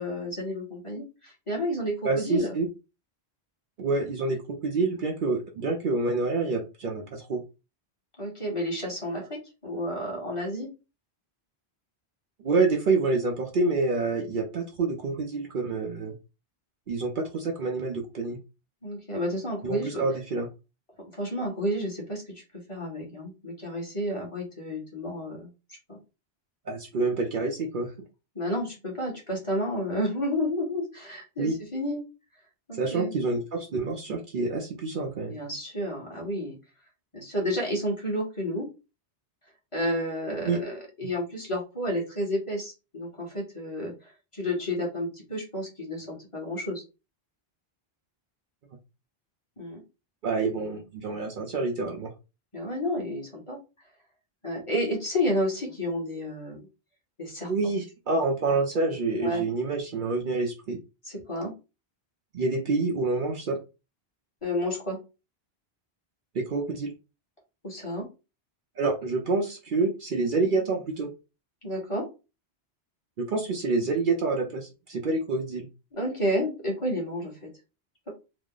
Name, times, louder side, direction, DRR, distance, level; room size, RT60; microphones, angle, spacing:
voice 1, 0.0-2.6 8.2-9.2 9.6-10.7 18.8-20.0 21.1-22.4 22.7-25.5 25.9-26.0 28.3-32.0 32.7-33.1 35.3-36.5 37.1-38.7 39.7-46.8 49.6-49.8 52.5-53.6 54.4-56.7 57.2-57.5 59.2-59.4 61.0-61.5 64.4-65.0 67.6-68.0 71.6-72.0 75.9-77.5, equal, 30° left, -2 dB, 1.2 m, -31 dB
voice 2, 2.0-2.7 3.8-7.4 12.4-16.2 16.9-18.4 19.6-20.5 26.7-27.9 31.4-31.6 32.7-35.4 40.4-40.6 50.2-52.1 57.4-60.8 62.3-63.6 66.3-66.9 68.8-71.1 73.2-75.7, right 3 dB, 60° right, 2 dB, 0.7 m, -27 dB
2.9 x 2.0 x 3.7 m, 0.29 s
omnidirectional pair, 1.1 m